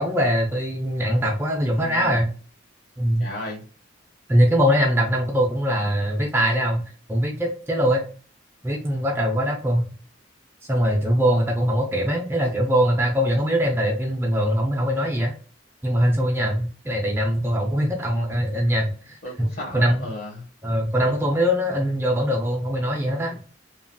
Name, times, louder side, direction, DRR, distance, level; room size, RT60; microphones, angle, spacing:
voice 1, 0.0-2.3 3.0-3.3 4.3-6.8 7.1-8.1 8.6-9.9 10.7-15.3 15.8-19.2 19.7-20.0 20.6-23.4, equal, 10° right, 0.5 m, -22 dB
voice 2, 1.7-2.2 3.2-3.6 19.2-20.4, left 1 dB, 50° left, 1.4 m, -34 dB
2.9 x 2.7 x 2.2 m
head